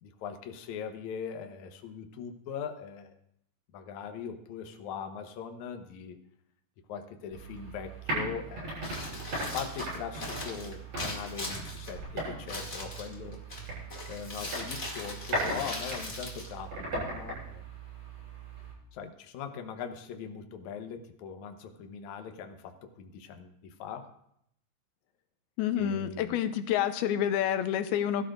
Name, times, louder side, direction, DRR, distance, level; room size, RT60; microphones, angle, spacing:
voice 1, 0.0-3.1 3.7-6.2 6.9-9.1 9.5-13.4 14.1-17.7 18.9-24.1 25.8-26.4, left 7 dB, 70° left, 5 dB, 2.0 m, -41 dB
sound 1, 7.3-18.7, right 2 dB, 40° right, 8.4 m, -38 dB
Crumpling crinkling, 8.7-17.2, left 1 dB, 25° left, 2.1 m, -41 dB
voice 2, 25.6-28.2, left 10 dB, 85° left, 9 dB, 2.7 m, -28 dB
22.5 x 12.5 x 2.5 m, 0.73 s
omnidirectional pair, 4.4 m